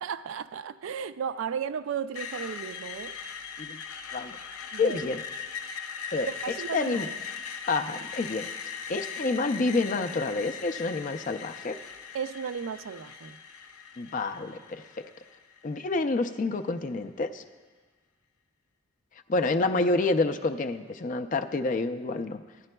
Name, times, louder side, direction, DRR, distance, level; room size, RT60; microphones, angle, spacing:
voice 1, 0.0-3.2 4.7-5.1 6.2-7.2 12.1-13.4, right 7 dB, 65° right, 0.3 m, -34 dB
Screech, 2.2-16.1, left 6 dB, 85° left, 0.7 m, -40 dB
voice 2, 4.8-5.2 6.1-6.3 6.7-7.1 7.7-8.5 8.9-11.8 14.0-15.0 15.6-17.4 19.3-22.4, left 3 dB, 35° left, 0.4 m, -28 dB
16.0 x 10.5 x 2.2 m
head